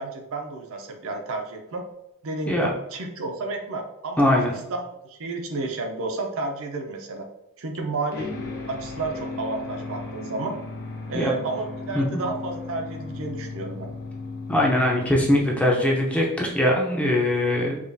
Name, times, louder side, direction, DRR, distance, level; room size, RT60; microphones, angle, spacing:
voice 1, 0.0-1.8 2.2-4.3 4.7-7.3 7.6-8.3 8.7-10.6 11.1-13.9, right 3 dB, 65° right, 3 dB, 0.6 m, -31 dB
voice 2, 4.2-4.5 11.1-11.3 11.9-12.2 14.5-17.8, left 1 dB, 5° left, -2 dB, 0.5 m, -21 dB
sound 1, 8.1-16.4, left 3 dB, 45° left, 0.9 m, -36 dB
4.9 x 2.4 x 2.6 m, 0.85 s
head